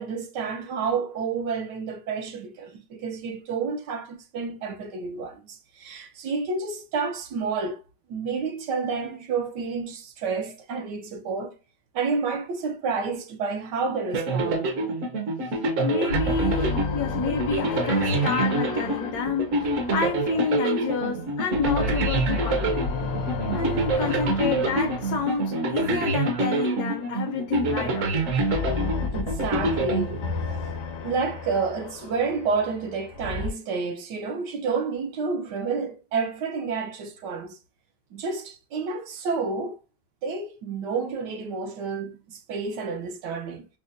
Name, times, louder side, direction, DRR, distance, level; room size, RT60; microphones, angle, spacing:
voice 1, 0.0-7.8 8.1-11.5 11.9-14.7 29.1-30.2 31.0-37.6 38.1-39.8 40.2-43.7, right 4 dB, 80° right, 1.4 m, -30 dB
sound 1, 14.1-30.7, right 2 dB, 55° right, 1.0 m, -27 dB
voice 2, 15.8-22.9 23.5-28.3, left 4 dB, 70° left, 1.1 m, -29 dB
sound 2, 16.1-21.1 21.4-26.7 27.5-33.5, left 4 dB, 90° left, 1.3 m, -32 dB
5.1 x 2.2 x 2.5 m
omnidirectional pair, 1.8 m